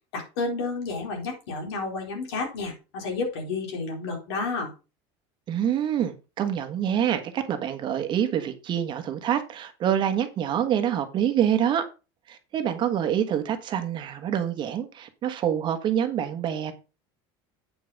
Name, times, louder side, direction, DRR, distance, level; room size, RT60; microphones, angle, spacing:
voice 1, 0.1-4.7, left 3 dB, 90° left, 4.4 m, -31 dB
voice 2, 5.5-11.9 12.3-16.7, right 9 dB, 35° right, 1.3 m, -26 dB
8.6 x 5.5 x 5.2 m
supercardioid pair, 135°, 13 cm